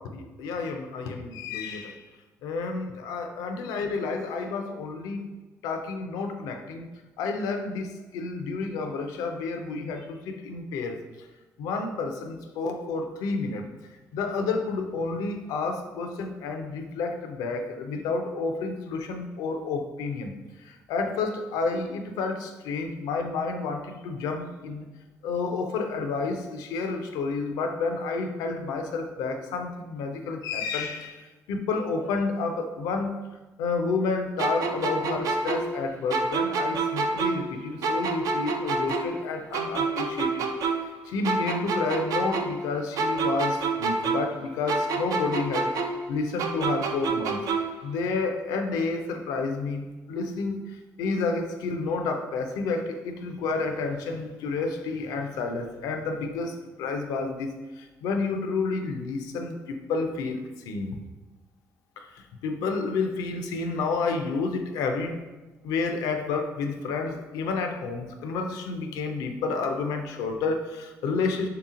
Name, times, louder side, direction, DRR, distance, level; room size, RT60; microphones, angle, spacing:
voice 1, 0.0-2.0 2.4-5.3 5.6-6.9 7.2-11.0 11.6-13.6 14.1-24.9 25.2-33.1 33.6-40.5 41.0-61.0 62.0-65.2 65.6-71.5, left 4 dB, 85° left, 5 dB, 0.4 m, -30 dB
sound 1, 34.4-37.5 37.8-41.0 41.2-44.4 44.7-47.8, right 3 dB, 70° right, 0.4 m, -28 dB
3.4 x 2.9 x 3.6 m, 1.2 s
supercardioid pair, 65°, 6 cm